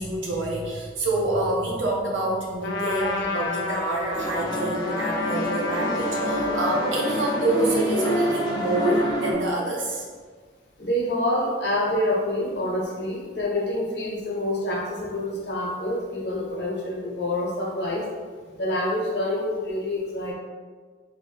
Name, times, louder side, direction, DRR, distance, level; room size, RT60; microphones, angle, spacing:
voice 1, 0.0-10.0, right 2 dB, 85° right, -2 dB, 0.7 m, -27 dB
Trumpet, 2.6-7.5, left 3 dB, 80° left, 0.5 m, -30 dB
sound 1, 4.1-9.3, equal, 20° left, 0.5 m, -26 dB
voice 2, 10.8-18.0 18.6-20.3, left 1 dB, 65° left, -4 dB, 0.9 m, -27 dB
3.0 x 2.6 x 3.3 m, 1.6 s
head